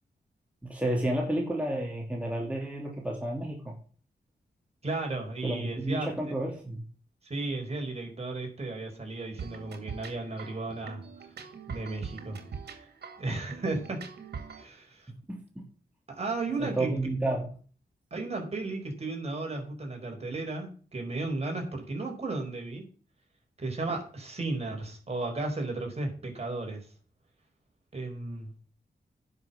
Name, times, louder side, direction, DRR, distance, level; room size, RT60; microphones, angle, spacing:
voice 1, 0.6-3.7 5.4-6.8 15.3-15.4 16.6-17.5, right 1 dB, 10° right, -1 dB, 3.0 m, -31 dB
voice 2, 4.8-6.1 7.2-11.0 11.7-12.9 13.2-14.1 14.6-15.1 16.1-16.9 18.1-22.8 23.6-26.9 27.9-28.5, right 2 dB, 40° right, 2 dB, 4.9 m, -34 dB
sound 1, 9.4-14.7, right 6 dB, 85° right, 2.3 m, -43 dB
10.5 x 6.6 x 8.4 m, 0.41 s
wide cardioid pair, 95°, 17 cm